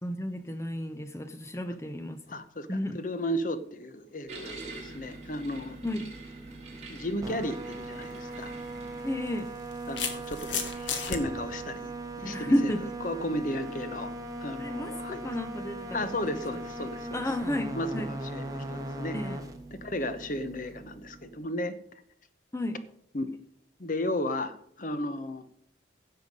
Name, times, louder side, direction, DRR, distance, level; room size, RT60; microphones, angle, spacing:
voice 1, 0.0-2.2 2.7-3.0 5.8-6.1 9.0-9.5 12.2-12.9 14.6-16.4 17.1-18.1 19.1-19.4 22.5-22.8, left 1 dB, 15° left, 10 dB, 0.5 m, -32 dB
voice 2, 2.3-5.8 6.9-8.5 9.9-12.7 13.0-14.1 14.4-15.2 15.9-17.2 17.7-19.2 19.8-21.7 23.1-23.3 23.8-25.4, left 1 dB, 45° left, 11 dB, 0.9 m, -34 dB
sound 1, 4.3-21.5, right 1 dB, 20° right, 1.3 m, -40 dB
sound 2, 4.3-9.3, right 3 dB, 35° right, 4.5 m, -46 dB
sound 3, 8.0-8.2 9.3-11.2, left 6 dB, 85° left, 1.7 m, -33 dB
16.0 x 6.7 x 5.3 m, 0.70 s
head